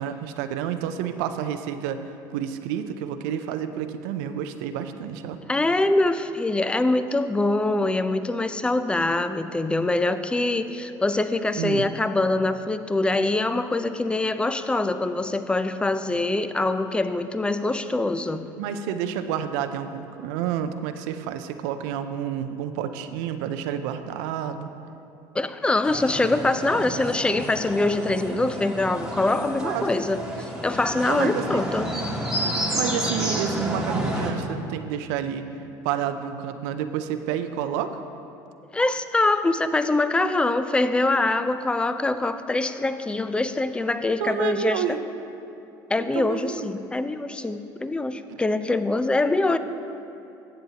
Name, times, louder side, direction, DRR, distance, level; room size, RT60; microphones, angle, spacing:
voice 1, 0.0-2.0 2.3-5.4 11.5-11.9 18.6-24.7 29.6-29.9 31.0-31.6 32.7-35.5 35.8-37.9 44.2-45.0 46.0-46.7, right 9 dB, 80° right, 9 dB, 0.5 m, -29 dB
voice 2, 5.5-18.4 25.3-30.2 30.6-31.9 38.7-45.0 45.9-49.6, left 2 dB, 10° left, 11 dB, 0.4 m, -24 dB
sound 1, 25.8-34.3, equal, 5° right, 1.5 m, -30 dB
13.5 x 7.8 x 2.8 m, 2.8 s
supercardioid pair, 85°, 10 cm